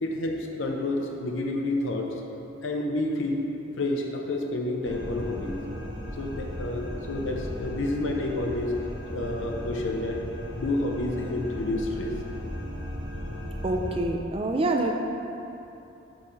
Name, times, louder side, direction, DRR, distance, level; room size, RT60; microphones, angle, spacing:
voice 1, 0.0-2.2 2.6-3.5 3.8-5.6 6.2-8.8 9.1-10.2 10.6-12.1, left 2 dB, 75° left, 1 dB, 0.7 m, -29 dB
sound 1, 4.8-14.0, equal, 65° right, 0.8 m, -36 dB
voice 2, 13.6-14.9, right 2 dB, 30° right, 3 dB, 0.3 m, -26 dB
6.2 x 3.2 x 5.6 m, 2.9 s
head